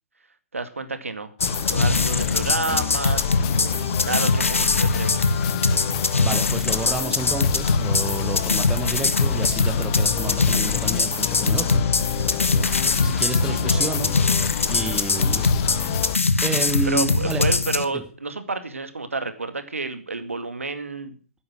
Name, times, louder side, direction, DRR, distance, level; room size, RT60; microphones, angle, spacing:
voice 1, 0.5-1.3 1.7-5.6 13.5-13.9 16.8-21.1, right 3 dB, 70° right, 10 dB, 2.3 m, -30 dB
sound 1, 1.4-17.8, left 3 dB, 65° left, 1.5 m, -22 dB
sound 2, 1.4-16.2, left 14 dB, 25° left, 0.7 m, -29 dB
voice 2, 6.2-11.8 13.0-14.1 14.7-15.5 15.9-16.1 16.4-17.4 17.9-18.0, right 4 dB, 5° right, 6 dB, 1.4 m, -30 dB
14.0 x 9.9 x 6.1 m, 0.38 s
figure-of-eight pair, 135°, 8 cm